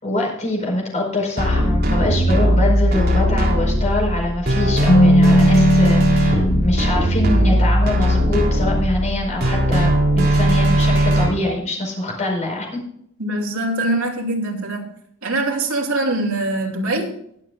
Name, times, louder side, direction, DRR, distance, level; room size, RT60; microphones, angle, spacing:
voice 1, 0.0-12.8, left 2 dB, 35° left, 0 dB, 4.9 m, -24 dB
sound 1, 1.4-11.3, right 1 dB, 45° right, 3.7 m, -18 dB
Keyboard (musical), 4.9-7.6, equal, 80° left, 1.0 m, -17 dB
voice 2, 13.2-14.9 15.2-17.2, right 2 dB, 80° right, 1 dB, 2.8 m, -23 dB
22.0 x 7.6 x 2.5 m, 0.70 s
head